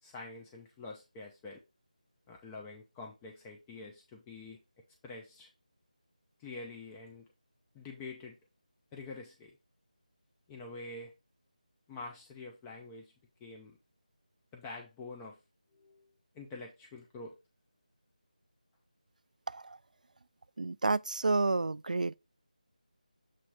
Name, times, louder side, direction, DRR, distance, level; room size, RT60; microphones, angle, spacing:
voice 1, 0.0-1.6 2.3-4.6 5.0-5.5 6.4-7.3 7.7-8.4 8.9-9.6 10.5-11.1 11.9-13.1 13.4-13.8 14.5-15.4 15.7-16.1 16.3-17.3, left 3 dB, 10° left, 0.4 m, -46 dB
voice 2, 19.5-19.8 20.6-22.2, right 3 dB, 70° right, 0.3 m, -30 dB
7.5 x 3.2 x 4.8 m
figure-of-eight pair, 165°, 4 cm